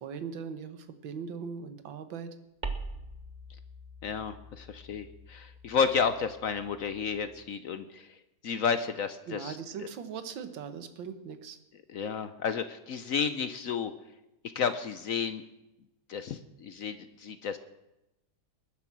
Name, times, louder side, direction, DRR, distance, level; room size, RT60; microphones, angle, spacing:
voice 1, 0.0-2.3 9.3-11.6, right 6 dB, 65° right, 9 dB, 1.9 m, -40 dB
sound 1, 2.6-7.5, right 2 dB, 25° right, 1.1 m, -43 dB
voice 2, 4.0-8.1 8.4-9.9 11.9-13.9 14.5-15.4 16.1-17.6, left 6 dB, 65° left, 11 dB, 0.8 m, -32 dB
20.5 x 10.5 x 6.1 m, 0.93 s
omnidirectional pair, 2.3 m